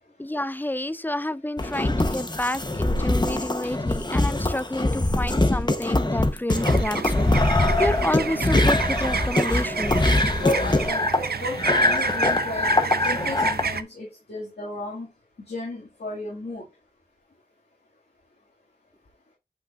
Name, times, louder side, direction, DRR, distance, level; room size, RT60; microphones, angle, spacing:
voice 1, 0.2-9.9, left 1 dB, 10° left, 0.4 m, -29 dB
sound 1, 1.6-13.6, left 2 dB, 25° left, 1.0 m, -23 dB
sound 2, 6.5-13.8, right 6 dB, 75° right, 0.5 m, -30 dB
voice 2, 10.4-15.1 15.5-16.6, left 2 dB, 85° left, 2.1 m, -32 dB
7.7 x 5.8 x 2.5 m
wide cardioid pair, 55°, 16 cm